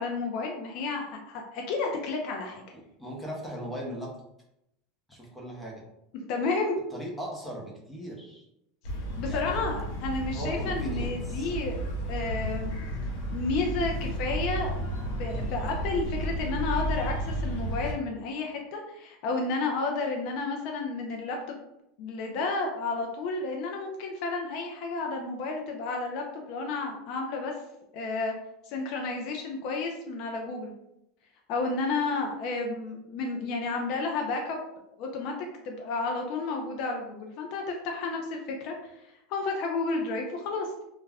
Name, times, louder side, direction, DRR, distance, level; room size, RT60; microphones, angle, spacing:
voice 1, 0.0-2.6 6.1-6.8 9.2-11.8 12.1-12.7 13.3-14.7 15.2-21.6 22.0-27.5 27.9-28.3 28.6-30.7 31.5-34.6 35.0-35.4 35.6-40.7, left 3 dB, 50° left, 1 dB, 0.4 m, -31 dB
voice 2, 2.7-4.1 5.1-5.8 6.9-8.4 9.2-9.6 10.3-11.5, right 1 dB, 5° left, -2 dB, 0.6 m, -38 dB
sound 1, 8.8-17.9, right 1 dB, 80° left, 0.9 m, -32 dB
2.3 x 2.1 x 3.3 m, 0.84 s
supercardioid pair, 160°, 0 cm